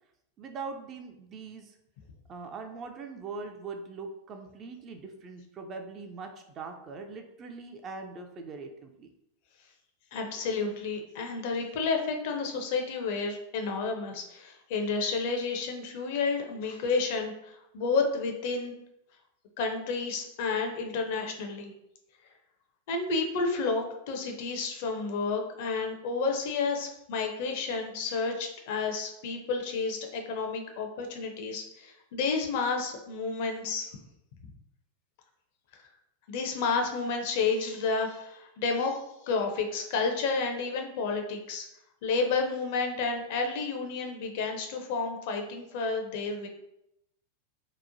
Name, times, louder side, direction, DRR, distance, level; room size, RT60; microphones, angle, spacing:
voice 1, 0.4-1.8 2.3-9.1, right 4 dB, 30° right, 5 dB, 0.3 m, -41 dB
voice 2, 10.1-18.7 19.6-21.7 22.9-34.0 36.3-41.7 42.0-46.5, left 4 dB, 50° left, 3 dB, 0.4 m, -31 dB
2.8 x 2.1 x 2.5 m, 0.81 s
figure-of-eight pair, 90°, 0 cm